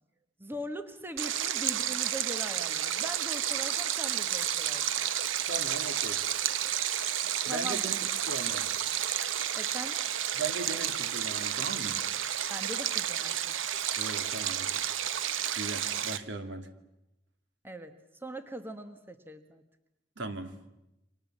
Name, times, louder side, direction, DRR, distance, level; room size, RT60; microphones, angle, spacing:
voice 1, 0.4-4.8 7.5-7.9 9.5-10.0 12.5-13.3 17.6-19.6, right 1 dB, 10° right, 9 dB, 1.2 m, -41 dB
Stream, 1.2-16.2, right 10 dB, 80° right, 0.9 m, -31 dB
voice 2, 5.5-6.2 7.5-8.7 10.3-12.0 14.0-14.9 15.6-16.7 20.2-20.5, right 2 dB, 65° right, 8 dB, 2.5 m, -38 dB
30.0 x 25.0 x 7.4 m, 0.92 s
head